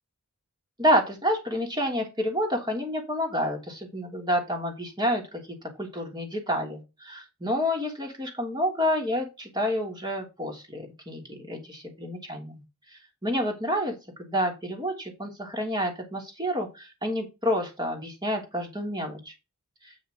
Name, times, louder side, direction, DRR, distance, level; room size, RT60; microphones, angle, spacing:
voice 1, 0.8-5.4 5.8-12.6 13.2-19.3, equal, 20° right, 2 dB, 3.0 m, -29 dB
8.7 x 6.4 x 3.8 m, 0.25 s
head